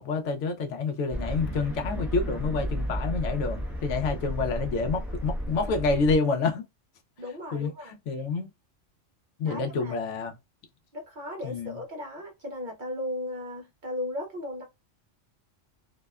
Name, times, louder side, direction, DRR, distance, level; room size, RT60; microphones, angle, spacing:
voice 1, 0.0-6.6 7.5-8.5 9.4-10.4 11.4-11.8, left 4 dB, 75° left, 0.9 m, -28 dB
sound 1, 1.1-6.2, equal, ahead, 0.5 m, -33 dB
voice 2, 7.2-8.0 9.5-10.0 10.9-14.6, left 1 dB, 50° right, 0.6 m, -36 dB
2.7 x 2.1 x 2.2 m
omnidirectional pair, 1.3 m